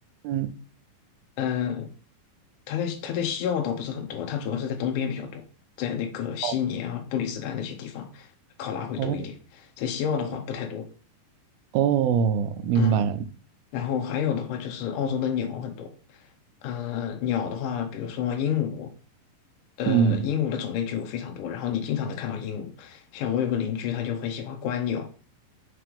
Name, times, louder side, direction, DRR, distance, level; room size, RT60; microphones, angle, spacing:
voice 1, 1.4-1.9 2.7-5.4 5.8-8.3 8.6-10.9 12.8-13.1 13.7-16.2 16.6-18.9 19.8-25.1, left 8 dB, 75° left, 2.0 m, -29 dB
voice 2, 11.7-13.2 19.9-20.3, right 7 dB, 80° right, 2.3 m, -23 dB
5.9 x 3.2 x 5.2 m
omnidirectional pair, 4.3 m